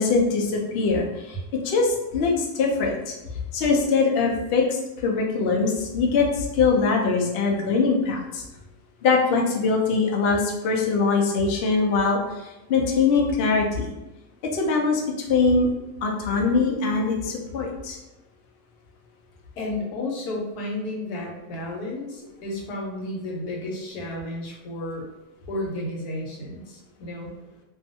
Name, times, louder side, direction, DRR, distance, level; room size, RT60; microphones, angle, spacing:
voice 1, 0.0-3.1 3.5-8.4 9.0-12.2 12.7-13.9 14.5-15.0 15.3-15.7 16.0-18.0, left 4 dB, 75° left, 0 dB, 0.5 m, -22 dB
voice 2, 19.6-25.1 25.5-27.3, left 1 dB, 90° left, -1 dB, 1.2 m, -32 dB
2.6 x 2.3 x 2.6 m, 0.99 s
omnidirectional pair, 1.6 m